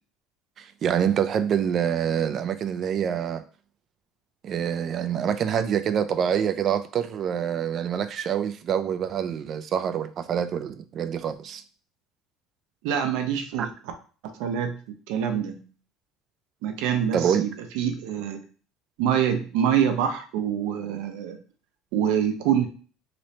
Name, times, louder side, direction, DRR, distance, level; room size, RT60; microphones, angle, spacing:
voice 1, 0.6-3.4 4.4-11.6 13.6-13.7 17.1-17.5, right 8 dB, 40° right, 0.3 m, -26 dB
voice 2, 12.8-13.7 14.3-14.8 15.1-15.6 16.6-18.4 19.0-21.4 21.9-22.7, right 8 dB, 80° right, 0.6 m, -25 dB
3.0 x 2.7 x 3.2 m
cardioid pair, 140°, 0 cm